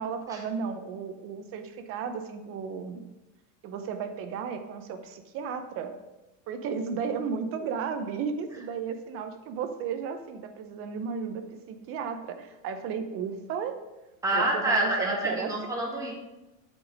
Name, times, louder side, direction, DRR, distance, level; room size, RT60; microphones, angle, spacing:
voice 1, 0.0-3.1 3.6-5.9 6.5-13.8 14.3-15.5, right 6 dB, 35° right, 9 dB, 0.6 m, -34 dB
voice 2, 14.2-16.1, right 1 dB, 10° right, -1 dB, 1.4 m, -27 dB
8.2 x 5.1 x 5.2 m, 1.1 s
supercardioid pair, 155°, 39 cm